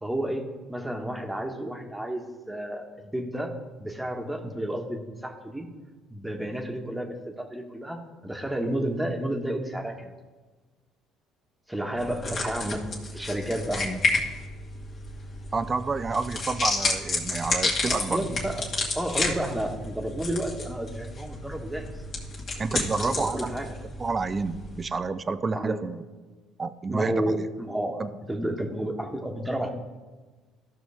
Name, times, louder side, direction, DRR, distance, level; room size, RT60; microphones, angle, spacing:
voice 1, 0.0-5.7 6.1-10.1 11.7-14.0 17.9-18.6 18.9-21.9 23.0-23.7 25.5-25.8 26.9-28.0 28.3-29.7, right 1 dB, 5° right, 2 dB, 1.4 m, -31 dB
sound 1, 12.0-24.8, left 3 dB, 50° left, 2.2 m, -31 dB
voice 2, 15.5-18.3 22.6-23.6 24.0-26.0 26.6-27.5 28.0-28.1, right 4 dB, 30° right, 13 dB, 0.6 m, -29 dB
14.0 x 6.0 x 3.5 m, 1.3 s
supercardioid pair, 80°, 0 cm